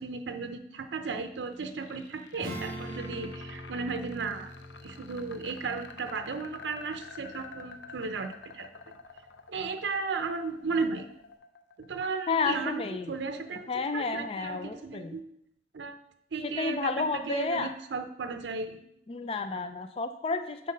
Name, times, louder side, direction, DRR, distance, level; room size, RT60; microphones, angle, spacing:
voice 1, 0.0-8.7 9.5-11.1 11.9-15.2 15.7-16.0 16.3-18.8, right 4 dB, 80° right, 8 dB, 0.5 m, -35 dB
sound 1, 1.2-13.3, left 4 dB, 85° left, 0.6 m, -49 dB
Acoustic guitar / Strum, 2.4-8.4, equal, 25° right, 2.1 m, -44 dB
voice 2, 12.3-13.1 13.7-15.2 16.4-17.7 19.1-20.7, left 4 dB, 30° left, 9 dB, 0.3 m, -31 dB
7.5 x 4.1 x 5.3 m, 0.76 s
head